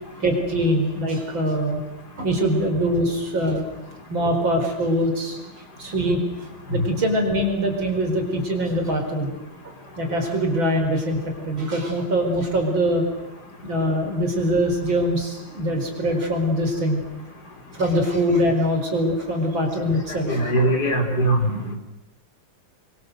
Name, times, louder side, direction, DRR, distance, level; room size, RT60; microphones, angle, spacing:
voice 1, 0.2-1.8 2.2-3.6 4.1-5.4 5.8-9.3 10.0-11.2 11.5-13.0 13.6-17.0 17.7-20.6, equal, 70° right, 3 dB, 5.6 m, -23 dB
voice 2, 20.3-21.7, right 1 dB, 50° left, 3 dB, 5.0 m, -21 dB
29.5 x 24.0 x 8.0 m, 0.89 s
omnidirectional pair, 2.2 m